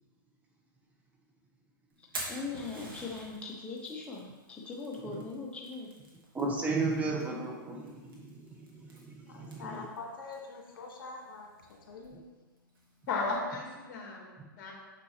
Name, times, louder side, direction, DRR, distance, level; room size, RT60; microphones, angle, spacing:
Fire, 1.9-13.3, right 2 dB, 75° right, 2.1 m, -49 dB
voice 1, 2.3-5.9 9.6-9.8, left 4 dB, 10° left, -3 dB, 0.8 m, -40 dB
voice 2, 6.3-9.6, right 3 dB, 15° right, -1 dB, 1.1 m, -34 dB
voice 3, 9.3-11.5 11.9-12.2, left 3 dB, 75° left, 0 dB, 1.5 m, -44 dB
voice 4, 13.1-14.7, left 3 dB, 50° left, 0 dB, 1.7 m, -35 dB
6.8 x 6.0 x 3.2 m, 1.3 s
hypercardioid pair, 125°, 12 cm